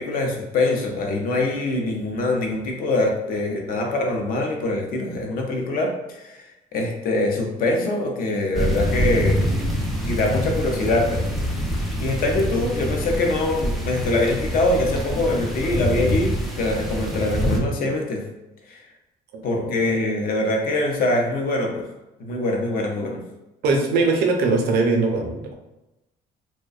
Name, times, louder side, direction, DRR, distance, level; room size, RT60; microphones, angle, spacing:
voice 1, 0.0-6.4 6.7-9.4 10.1-11.2 11.6-11.7 12.0-16.3 16.6-18.2 18.7-18.8 19.4-21.8 22.2-23.2, left 2 dB, 60° left, 1 dB, 0.6 m, -23 dB
sound 1, 8.5-17.6, equal, ahead, 0.4 m, -25 dB
voice 2, 23.6-25.5, right 3 dB, 70° right, 2 dB, 0.5 m, -21 dB
2.5 x 2.1 x 2.3 m, 0.98 s
cardioid pair, 110°, 17 cm